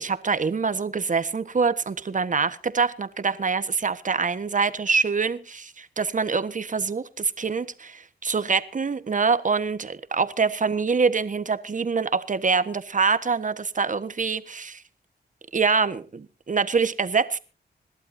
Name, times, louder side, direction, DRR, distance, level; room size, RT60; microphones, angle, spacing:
voice 1, 0.0-14.8 15.5-17.4, right 5 dB, 45° right, 1.4 m, -25 dB
26.0 x 12.0 x 2.7 m
cardioid pair, 65°, 18 cm